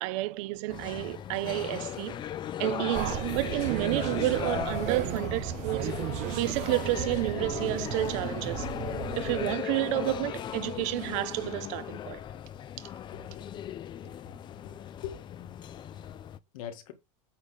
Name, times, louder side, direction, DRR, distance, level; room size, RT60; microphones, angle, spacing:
voice 1, 0.0-2.2 2.6-6.0 6.3-8.7 9.1-12.2, right 18 dB, 65° right, 0.9 m, -30 dB
sound 1, 0.7-16.4, left 10 dB, 25° left, 0.5 m, -37 dB
sound 2, 2.9-9.6, right 15 dB, 45° right, 0.5 m, -35 dB
voice 2, 13.1-14.1 14.6-14.8 15.0-15.2 16.5-16.9, left 9 dB, 90° left, 1.9 m, -43 dB
8.6 x 4.2 x 6.5 m
supercardioid pair, 145°, 17 cm